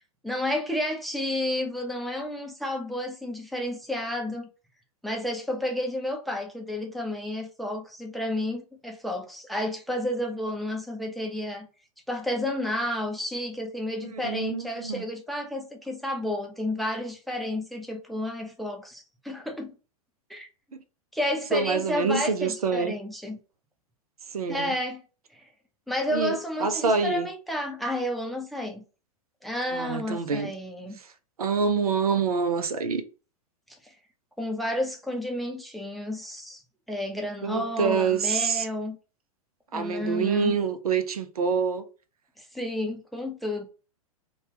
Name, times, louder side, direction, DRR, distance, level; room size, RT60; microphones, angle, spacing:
voice 1, 0.2-4.5 5.0-11.7 12.1-19.7 20.3-20.5 21.1-23.4 24.5-25.0 25.3-25.5 25.9-28.8 29.4-31.0 33.8-33.9 34.4-36.6 36.9-39.0 39.7-40.6 42.4-43.7, left 1 dB, ahead, 0.5 m, -31 dB
voice 2, 14.1-15.0 21.5-22.9 24.3-24.7 26.1-27.3 29.7-30.5 31.0-31.1 31.4-33.0 37.4-38.7 39.7-41.8, right 5 dB, 85° right, 0.5 m, -26 dB
2.8 x 2.2 x 3.3 m
hypercardioid pair, 105°, 19 cm